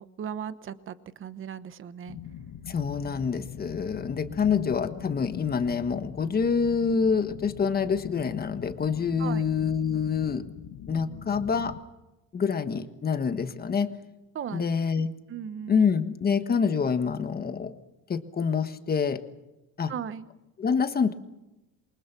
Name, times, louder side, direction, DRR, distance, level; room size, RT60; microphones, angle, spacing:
voice 1, 0.0-2.2 9.2-9.4 14.3-14.7 15.3-15.8 19.9-20.3, right 8 dB, 30° right, 13 dB, 1.0 m, -37 dB
sound 1, 2.1-11.8, left 10 dB, 55° left, 1.7 m, -42 dB
voice 2, 2.7-10.4 10.9-11.7 12.3-13.9 14.5-15.1 15.7-17.7 18.1-19.2 19.8-19.9 20.6-21.1, left 6 dB, 25° left, 9 dB, 1.4 m, -26 dB
28.0 x 24.0 x 6.1 m, 0.98 s
cardioid pair, 175°, 40 cm